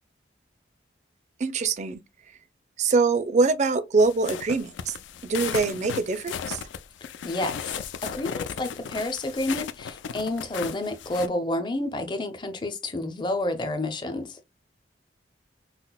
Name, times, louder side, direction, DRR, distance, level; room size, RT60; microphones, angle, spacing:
voice 1, 1.4-2.0 2.8-4.9 5.2-6.7, right 4 dB, 40° right, 0.4 m, -24 dB
sound 1, 4.0-11.3, left 7 dB, 80° left, 0.3 m, -36 dB
voice 2, 7.2-14.4, left 1 dB, 25° left, 0.5 m, -30 dB
5.7 x 2.0 x 2.2 m
head